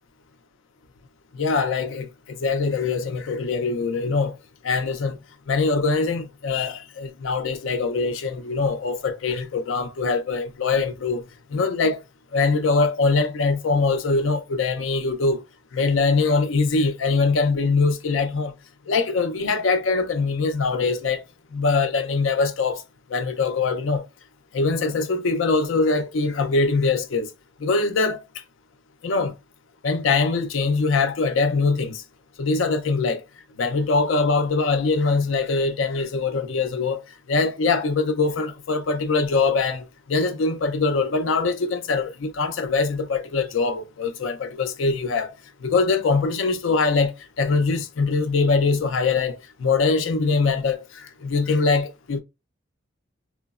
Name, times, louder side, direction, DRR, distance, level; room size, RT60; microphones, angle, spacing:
voice 1, 1.3-4.4 4.6-5.2 5.5-11.2 11.5-12.0 12.3-15.4 15.7-18.5 18.9-21.2 21.5-22.8 23.1-24.0 24.5-27.3 27.6-28.2 29.0-29.3 29.8-32.0 32.4-33.2 33.6-45.3 45.6-52.2, left 4 dB, 80° left, 0.5 m, -23 dB
3.1 x 2.0 x 2.3 m
head